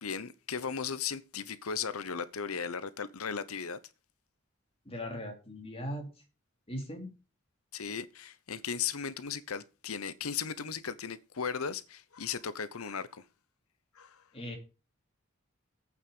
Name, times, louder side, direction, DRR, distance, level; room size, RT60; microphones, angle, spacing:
voice 1, 0.0-3.8 7.7-13.2 14.0-14.2, left 6 dB, 90° left, 0.8 m, -36 dB
voice 2, 4.8-6.1 6.7-7.1 14.3-14.6, equal, 25° left, 3.2 m, -39 dB
8.6 x 8.2 x 5.4 m
head